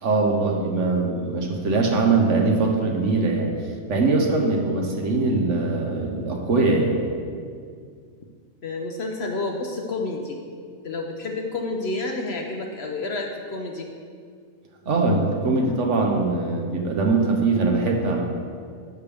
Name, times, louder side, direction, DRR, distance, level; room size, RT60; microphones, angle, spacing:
voice 1, 0.0-3.5 3.9-7.0 14.9-18.2, right 3 dB, 60° right, 1 dB, 1.2 m, -22 dB
voice 2, 8.6-10.4 10.8-13.9, left 2 dB, 55° left, 2 dB, 0.8 m, -29 dB
11.0 x 6.5 x 3.4 m, 2.2 s
omnidirectional pair, 1.5 m